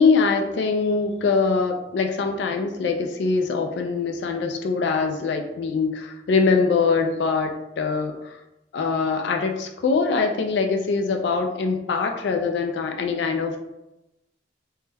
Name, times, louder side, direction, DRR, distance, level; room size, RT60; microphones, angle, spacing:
voice 1, 0.0-8.4 8.7-13.6, left 4 dB, 70° left, 4 dB, 0.3 m, -23 dB
3.0 x 2.2 x 3.3 m, 0.92 s
head